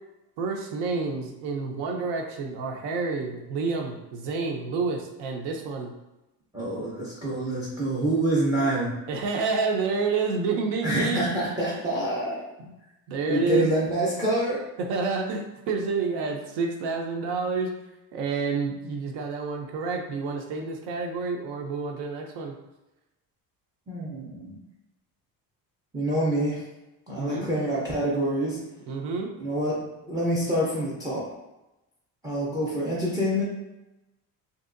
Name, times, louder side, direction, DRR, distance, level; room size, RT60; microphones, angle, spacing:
voice 1, 0.4-5.9 9.1-11.4 12.6-12.7 13.1-13.7 14.8-17.7 18.1-22.5 27.1-27.5 28.9-29.3, right 4 dB, 80° right, 2 dB, 0.6 m, -29 dB
voice 2, 6.5-9.0 10.8-12.4 13.3-14.7 23.9-24.6 25.9-26.6 27.1-28.6 29.4-31.3 32.2-33.4, right 1 dB, 10° right, -5 dB, 0.3 m, -26 dB
2.9 x 2.7 x 2.5 m, 0.96 s
cardioid pair, 165°, 40 cm